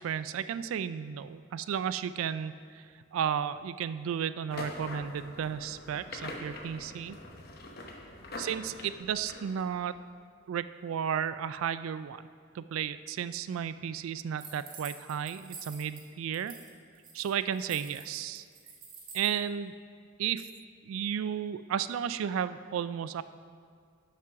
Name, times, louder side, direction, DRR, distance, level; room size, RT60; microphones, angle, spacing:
voice 1, 0.0-7.2 8.4-9.9 10.5-12.2 12.5-16.5 17.1-18.4 19.1-19.7 20.2-20.5 20.8-23.2, right 8 dB, 85° right, 13 dB, 0.3 m, -33 dB
sound 1, 4.5-9.9, left 2 dB, 50° left, 0.9 m, -44 dB
sound 2, 14.4-16.0 16.3-16.7 17.0-19.4, right 5 dB, 45° right, 1.3 m, -47 dB
7.5 x 5.9 x 5.9 m, 2.1 s
head